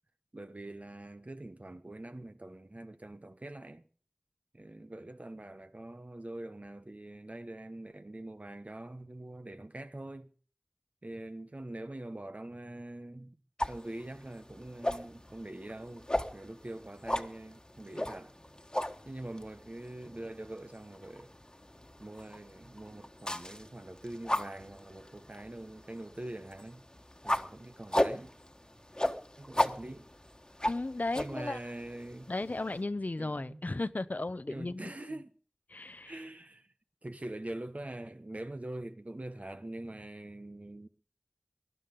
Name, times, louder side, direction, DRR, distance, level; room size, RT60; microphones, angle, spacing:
voice 1, 0.3-3.8 4.5-10.3 11.0-13.4 13.7-18.3 19.0-21.3 22.0-26.9 27.2-28.3 29.4-30.1 31.2-32.3 33.2-33.7 34.5-35.3 36.0-36.7 37.0-40.9, right 1 dB, 55° right, 1.2 m, -44 dB
sound 1, 13.6-32.8, left 1 dB, 25° left, 1.4 m, -37 dB
voice 2, 30.7-31.6 32.3-35.2 35.7-36.2, left 2 dB, 70° left, 0.8 m, -35 dB
19.5 x 11.5 x 5.3 m
wide cardioid pair, 40°, 3 cm